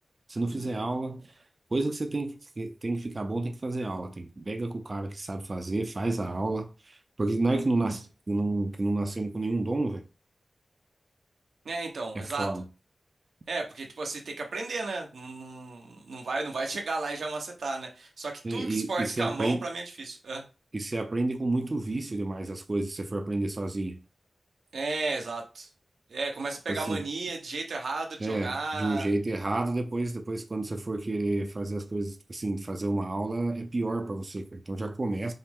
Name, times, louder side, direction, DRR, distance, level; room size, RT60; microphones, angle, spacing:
voice 1, 0.3-1.3 1.7-10.0 12.1-12.6 18.4-19.7 20.7-24.0 26.7-27.0 28.2-35.3, right 2 dB, 40° right, 0.5 m, -30 dB
voice 2, 11.6-12.5 13.5-20.4 24.7-25.7 26.1-29.1, right 3 dB, 85° right, 0.9 m, -34 dB
5.4 x 2.0 x 3.6 m
wide cardioid pair, 75°, 0 cm